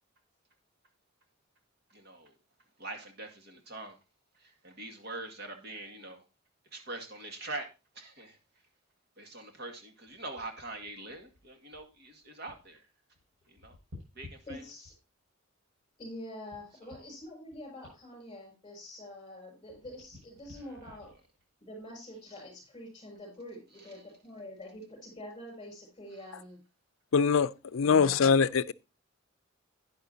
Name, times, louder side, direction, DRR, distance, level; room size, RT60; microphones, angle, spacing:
voice 1, 1.9-2.3 2.8-4.0 4.3-6.2 6.7-7.7 7.9-8.4 9.2-12.9 13.5-13.8 14.1-14.7 16.8-17.0 20.5-20.9 23.8-24.1 26.1-26.2, right 2 dB, 55° right, 2.1 m, -44 dB
sound 1, 10.1-12.8 13.1-15.2 15.8-19.3 19.6-22.4 23.0-23.2, left 2 dB, 75° right, 7.0 m, -55 dB
voice 2, 14.5-14.9 16.0-21.1 21.6-26.6 27.8-28.3, left 1 dB, 25° left, 6.0 m, -46 dB
voice 3, 27.1-28.7, left 5 dB, 75° left, 0.5 m, -24 dB
11.5 x 9.9 x 2.8 m
head